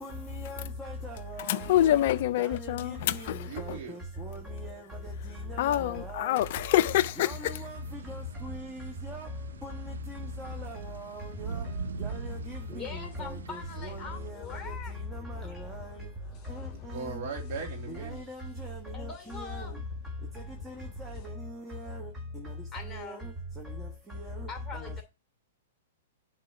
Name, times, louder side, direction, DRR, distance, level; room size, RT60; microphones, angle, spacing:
voice 1, 0.0-2.1 2.4-2.7 3.1-5.1 5.5-6.4 7.2-7.8 8.1-9.3 9.6-11.6 12.0-14.7 15.1-16.1 16.5-16.7 17.9-19.1 19.4-19.7 20.7-22.1 22.9-23.2 24.1-24.4 24.8-25.0, equal, 10° right, 1.3 m, -40 dB
voice 2, 1.5-3.8 5.6-7.5, left 13 dB, 55° left, 0.3 m, -26 dB
voice 3, 3.4-4.0 16.7-18.2, right 5 dB, 50° right, 2.4 m, -39 dB
sound 1, 6.7-14.3, right 7 dB, 75° right, 0.5 m, -43 dB
sound 2, 7.2-21.3, left 7 dB, 30° left, 2.2 m, -49 dB
voice 4, 12.7-14.9 15.2-15.7 18.9-19.9 22.7-23.3 24.5-25.0, left 5 dB, 10° left, 2.7 m, -43 dB
7.5 x 3.7 x 5.8 m
hypercardioid pair, 115°, 0 cm